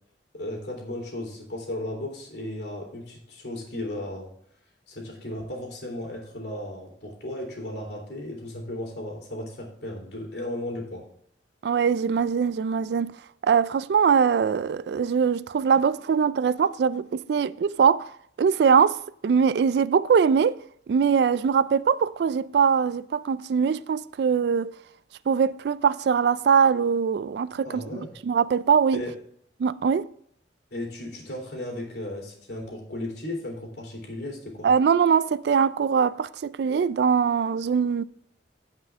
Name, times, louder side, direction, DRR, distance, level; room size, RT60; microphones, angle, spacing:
voice 1, 0.3-4.3 4.9-11.0 27.6-28.1 28.9-29.1 30.7-34.7, left 1 dB, 60° left, 3.4 m, -35 dB
voice 2, 11.6-13.1 13.4-20.6 20.9-24.7 25.3-29.0 29.6-30.1 34.6-38.0, right 6 dB, 60° right, 0.3 m, -22 dB
16.5 x 5.6 x 3.6 m
head